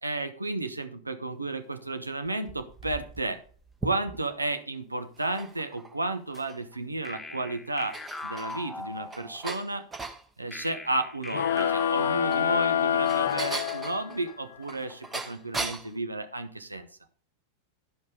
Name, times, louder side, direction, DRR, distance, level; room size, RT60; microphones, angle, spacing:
voice 1, 0.0-3.4 3.8-9.9 10.4-16.9, right 2 dB, 80° right, 8 dB, 0.8 m, -32 dB
sound 1, 2.2-4.4 5.1-6.8 7.2-7.3 7.7-10.2 12.0-16.0, right 3 dB, 15° right, 1.0 m, -39 dB
sound 2, 7.0-9.6 10.5-13.0, left 2 dB, 10° left, 0.7 m, -40 dB
sound 3, 11.3-14.3, left 9 dB, 65° left, 0.5 m, -26 dB
12.0 x 5.4 x 5.1 m, 0.42 s
figure-of-eight pair, 90°, 0 cm